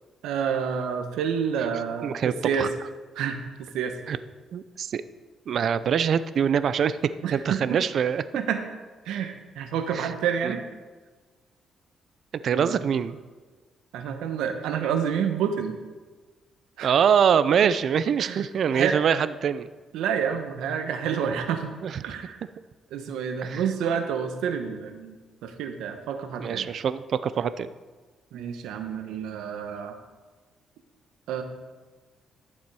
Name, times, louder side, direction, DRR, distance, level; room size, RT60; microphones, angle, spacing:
voice 1, 0.2-2.7 3.1-3.9 7.2-7.8 8.3-8.6 9.0-10.6 12.5-12.8 13.9-15.8 16.8-17.0 18.2-18.9 19.9-21.7 22.0-22.4 22.9-25.2 25.4-26.7 28.3-30.0 31.3-31.4, right 7 dB, 85° right, 6 dB, 1.1 m, -29 dB
voice 2, 2.0-2.7 4.1-4.2 4.5-5.0 5.5-7.0 7.3-8.2 9.9-10.1 10.4-10.6 12.3-13.2 16.8-19.7 21.8-22.0 23.4-23.7 26.4-27.7, right 7 dB, 60° right, 14 dB, 0.5 m, -24 dB
12.5 x 7.2 x 4.8 m, 1.4 s
cardioid pair, 90°, 0 cm